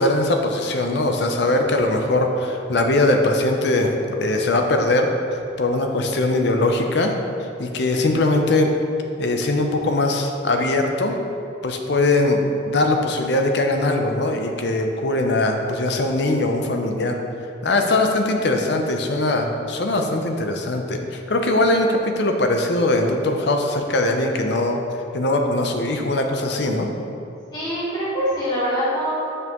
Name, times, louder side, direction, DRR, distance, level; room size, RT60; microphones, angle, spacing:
voice 1, 0.0-3.9 4.2-7.1 7.6-8.7 9.2-11.2 11.6-17.2 17.6-24.8 25.1-26.9, left 2 dB, 55° left, 4 dB, 0.6 m, -21 dB
voice 2, 27.5-29.2, equal, 20° left, -10 dB, 1.4 m, -24 dB
8.3 x 5.4 x 3.0 m, 2.7 s
head